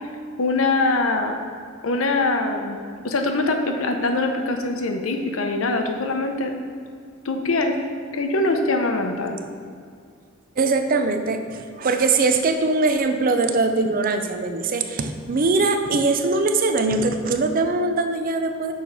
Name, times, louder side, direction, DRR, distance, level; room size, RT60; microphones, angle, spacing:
voice 1, 0.4-1.3 1.8-2.8 3.0-6.5 7.2-7.8 8.1-9.4, left 2 dB, 80° left, 4 dB, 0.7 m, -23 dB
voice 2, 10.6-18.7, right 3 dB, 45° right, 7 dB, 0.5 m, -21 dB
6.4 x 4.6 x 5.3 m, 2.2 s
head